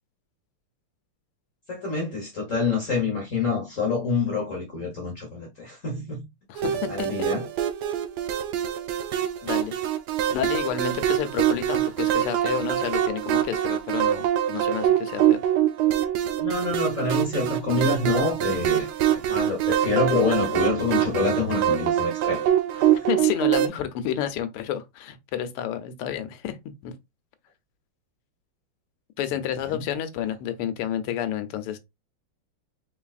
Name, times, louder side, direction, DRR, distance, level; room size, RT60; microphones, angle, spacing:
voice 1, 1.7-6.2 6.9-7.5 11.7-11.8 16.4-22.4 22.7-22.9 29.7-29.8, left 3 dB, 45° left, 1.3 m, -27 dB
voice 2, 6.5-7.1 9.4-9.8 10.3-15.4 23.1-26.6 26.8-26.9 29.2-31.8, left 10 dB, 85° left, 1.6 m, -30 dB
sound 1, 6.6-23.7, right 11 dB, 80° right, 0.9 m, -24 dB
4.0 x 3.9 x 2.4 m
omnidirectional pair, 2.4 m